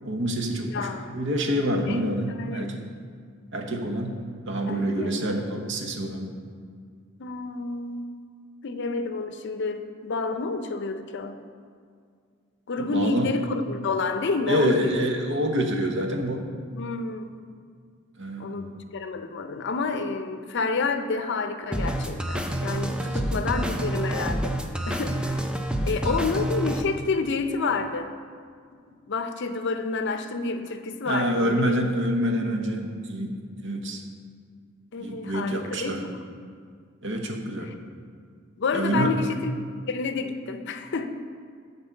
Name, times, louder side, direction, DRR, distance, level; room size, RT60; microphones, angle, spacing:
voice 1, 0.0-2.8 3.5-4.2 4.5-6.3 12.8-13.3 14.5-16.4 18.2-18.7 23.0-23.2 25.9-26.0 31.0-34.0 35.0-36.0 37.0-37.7 38.7-39.1, equal, 60° right, 3 dB, 1.0 m, -27 dB
voice 2, 0.7-1.1 1.9-2.0 2.4-2.7 4.7-5.1 7.2-8.2 8.6-11.4 12.7-15.0 16.7-17.4 18.4-24.6 24.9-25.5 25.8-28.1 28.9-31.8 34.9-36.0 37.6-37.7 38.6-39.5 39.9-41.1, left 4 dB, 60° left, 8 dB, 0.5 m, -29 dB
sound 1, 21.7-26.8, right 1 dB, 5° right, 0.4 m, -28 dB
9.5 x 4.0 x 7.1 m, 2.1 s
head